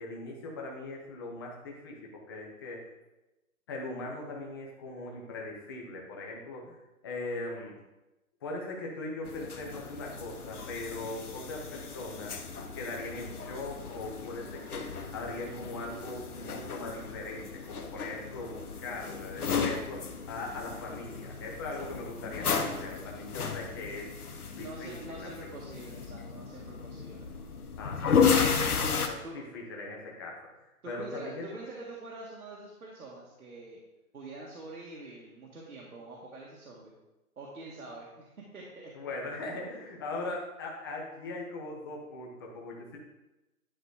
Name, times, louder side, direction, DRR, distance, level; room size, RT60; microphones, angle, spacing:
voice 1, 0.0-2.9 3.7-7.8 8.4-12.4 12.7-24.1 24.5-25.5 27.8-28.6 29.0-31.5 38.9-43.0, left 2 dB, 15° left, -2 dB, 0.9 m, -40 dB
sound 1, 9.2-29.1, left 6 dB, 85° left, 1.2 m, -34 dB
voice 2, 24.6-27.3 29.2-29.4 30.8-33.8 34.1-36.9 37.4-38.9, right 2 dB, 80° right, -4 dB, 1.8 m, -45 dB
11.0 x 4.0 x 4.8 m, 1.0 s
hypercardioid pair, 165°, 43 cm